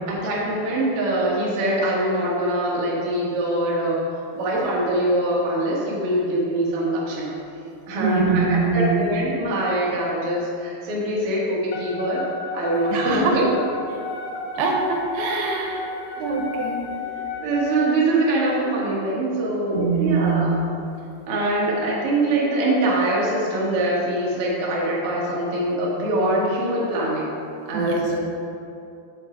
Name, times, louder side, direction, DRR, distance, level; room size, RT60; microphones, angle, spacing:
voice 1, 0.1-4.0 4.3-7.3 7.9-12.2 12.5-13.4 17.1-20.5 21.3-27.3 27.6-28.2, right 1 dB, 55° right, -5 dB, 1.7 m, -23 dB
voice 2, 8.0-9.1 12.9-13.4 13.9-14.0 14.6-16.8 19.7-20.6 27.7-28.0, right 4 dB, 80° right, 0 dB, 2.7 m, -23 dB
Wind instrument woodwind instrument, 11.7-17.8, left 4 dB, 80° left, 2.0 m, -32 dB
7.0 x 5.3 x 5.1 m, 2.6 s
omnidirectional pair, 4.6 m